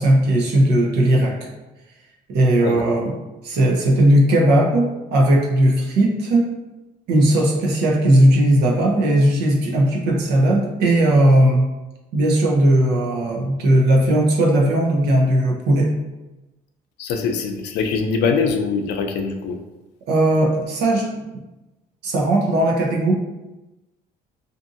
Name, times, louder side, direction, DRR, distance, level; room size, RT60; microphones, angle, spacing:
voice 1, 0.0-1.3 2.3-3.1 3.4-6.5 7.1-11.7 12.1-15.9 20.1-21.2 22.0-23.1, right 1 dB, 75° right, -1 dB, 0.7 m, -17 dB
voice 2, 17.0-19.5, left 5 dB, 80° left, 4 dB, 0.4 m, -22 dB
2.6 x 2.5 x 2.5 m, 1.1 s
cardioid pair, 110°, 17 cm